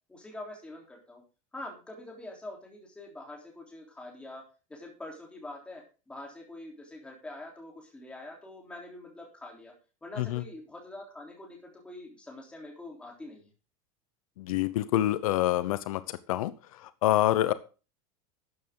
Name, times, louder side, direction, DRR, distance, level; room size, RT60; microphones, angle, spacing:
voice 1, 0.1-1.2 1.5-4.4 4.7-9.7 10.0-13.5, left 1 dB, 5° left, -1 dB, 3.6 m, -45 dB
voice 2, 14.4-16.0 16.3-16.5 17.0-17.5, left 14 dB, 75° left, 14 dB, 0.9 m, -26 dB
13.0 x 8.8 x 3.8 m, 0.33 s
supercardioid pair, 170°, 18 cm